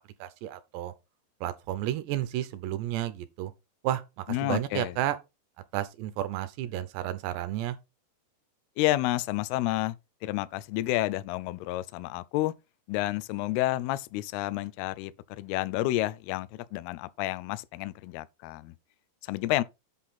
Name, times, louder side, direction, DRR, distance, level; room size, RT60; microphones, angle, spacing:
voice 1, 0.2-0.9 1.4-3.5 3.8-5.2 5.7-7.8, right 13 dB, 75° right, 2.9 m, -32 dB
voice 2, 4.3-4.9 8.8-10.0 10.2-12.5 12.9-18.7 19.3-19.6, left 16 dB, 85° left, 2.2 m, -30 dB
8.5 x 5.7 x 4.2 m
omnidirectional pair, 5.2 m